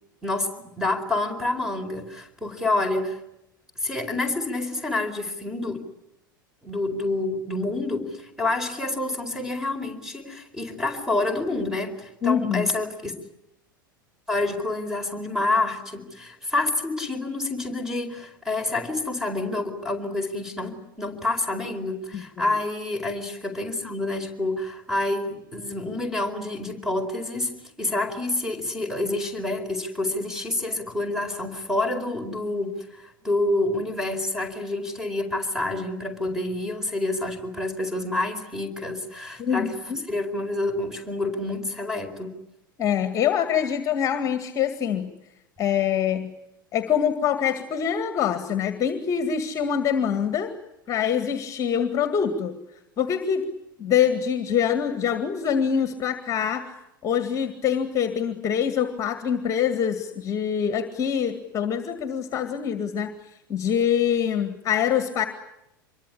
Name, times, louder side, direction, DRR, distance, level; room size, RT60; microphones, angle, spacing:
voice 1, 0.2-3.2 3.8-5.8 6.6-13.1 14.3-39.7 40.1-42.4, left 2 dB, 5° right, 10 dB, 4.7 m, -28 dB
voice 2, 12.2-12.7 22.1-22.5 39.4-40.0 42.8-45.1 45.6-46.3 46.7-50.5 50.9-52.6 53.0-53.5 53.8-56.7 57.0-63.2 63.5-65.2, left 8 dB, 30° left, 9 dB, 2.0 m, -25 dB
26.0 x 23.0 x 10.0 m, 0.86 s
figure-of-eight pair, 85°, 11 cm